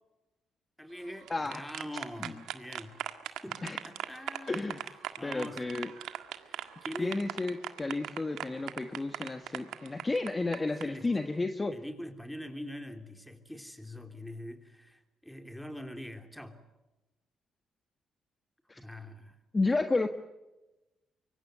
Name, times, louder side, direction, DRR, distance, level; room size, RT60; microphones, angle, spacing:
voice 1, 0.8-3.0 3.4-4.6 5.2-5.6 6.4-7.2 10.8-11.1 11.7-16.6 18.8-19.7, left 1 dB, 5° left, 6 dB, 3.3 m, -43 dB
sound 1, 1.1-10.8, right 12 dB, 85° right, 1.7 m, -39 dB
voice 2, 1.3-1.6 2.2-2.3 3.6-3.8 4.5-4.9 5.2-5.9 7.0-11.8 18.7-18.8 19.5-20.1, left 3 dB, 20° left, 7 dB, 1.5 m, -32 dB
25.0 x 24.0 x 8.1 m, 1.0 s
cardioid pair, 90°, 0 cm